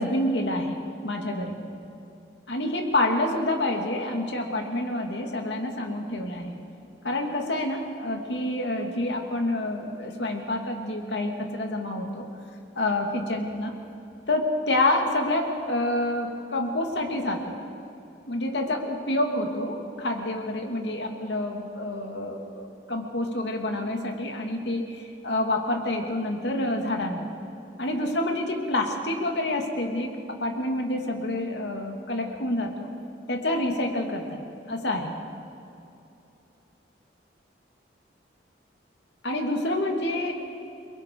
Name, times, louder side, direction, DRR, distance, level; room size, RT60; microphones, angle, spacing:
voice 1, 0.0-1.5 2.5-6.6 7.0-12.3 12.8-13.7 14.3-17.6 18.3-27.3 27.8-32.9 33.3-34.4 34.7-35.1 39.2-40.3, left 1 dB, 70° left, 2 dB, 2.6 m, -28 dB
30.0 x 22.5 x 4.8 m, 2.7 s
head